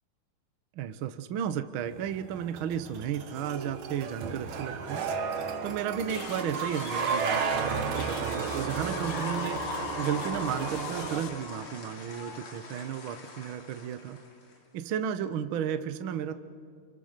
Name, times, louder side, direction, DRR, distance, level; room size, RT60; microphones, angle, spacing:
voice 1, 0.7-5.1 5.6-9.6 10.0-14.2 14.7-16.4, right 9 dB, 85° right, 11 dB, 1.1 m, -33 dB
sound 1, 1.9-11.2, right 5 dB, 65° right, 2.5 m, -33 dB
sound 2, 6.1-11.3, left 9 dB, 65° left, 1.7 m, -43 dB
sound 3, 8.2-14.5, left 3 dB, 45° left, 3.2 m, -40 dB
30.0 x 25.5 x 6.7 m, 2.3 s
omnidirectional pair, 3.8 m